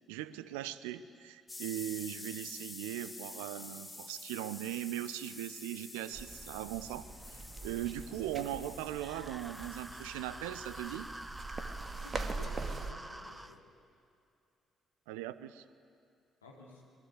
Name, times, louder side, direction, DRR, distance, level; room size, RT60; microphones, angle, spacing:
voice 1, 0.1-11.1 15.1-15.6, right 13 dB, 70° right, 15 dB, 0.8 m, -39 dB
sound 1, 1.5-12.1, left 2 dB, 20° left, 3.8 m, -49 dB
sound 2, 6.1-12.9, right 3 dB, 40° right, 2.2 m, -43 dB
sound 3, 8.9-13.6, right 1 dB, 10° right, 1.3 m, -47 dB
voice 2, 12.0-13.7 16.4-16.8, left 3 dB, 80° left, -2 dB, 2.8 m, -53 dB
26.5 x 21.0 x 9.7 m, 2.4 s
figure-of-eight pair, 40°, 0 cm